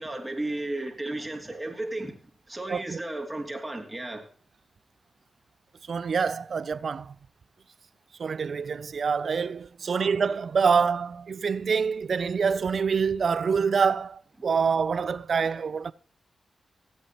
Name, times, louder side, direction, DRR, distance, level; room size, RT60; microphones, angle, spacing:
voice 1, 0.0-4.2 9.8-10.0, right 2 dB, 20° right, 2.7 m, -34 dB
voice 2, 2.7-3.0 5.9-7.2 8.2-15.9, right 5 dB, 65° right, 0.4 m, -26 dB
17.0 x 8.1 x 3.0 m
supercardioid pair, 40°, 0 cm